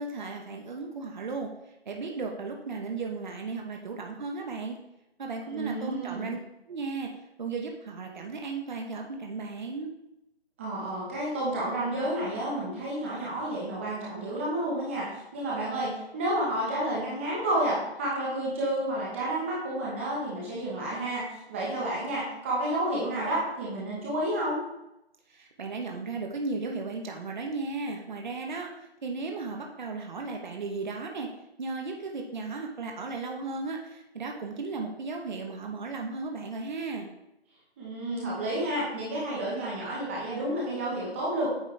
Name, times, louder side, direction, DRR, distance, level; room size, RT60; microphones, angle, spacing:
voice 1, 0.0-1.5 1.9-4.8 5.2-6.4 6.7-7.1 7.4-9.9 25.3-28.7 29.0-31.3 31.6-37.1, right 3 dB, 45° right, 2 dB, 1.0 m, -35 dB
voice 2, 5.5-6.4 10.6-15.1 15.3-21.2 21.5-24.6 37.8-41.5, right 1 dB, 10° right, -5 dB, 1.0 m, -30 dB
8.8 x 4.3 x 3.2 m, 0.88 s
figure-of-eight pair, 160°, 32 cm